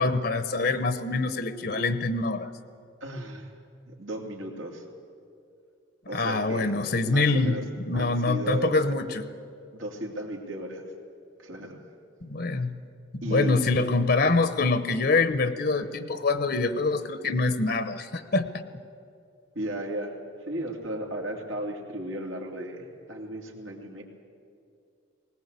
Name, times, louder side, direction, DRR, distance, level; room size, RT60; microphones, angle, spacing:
voice 1, 0.0-2.5 6.1-7.6 7.9-9.2 12.2-12.8 13.1-18.6, left 3 dB, 50° left, 11 dB, 0.9 m, -25 dB
voice 2, 3.0-3.5 3.9-4.8 6.1-6.7 7.0-7.6 7.9-9.0 9.7-10.8 11.4-11.8 13.2-13.6 19.5-20.1 20.4-24.0, right 1 dB, 85° right, -1 dB, 3.0 m, -35 dB
20.0 x 18.5 x 8.2 m, 2.4 s
head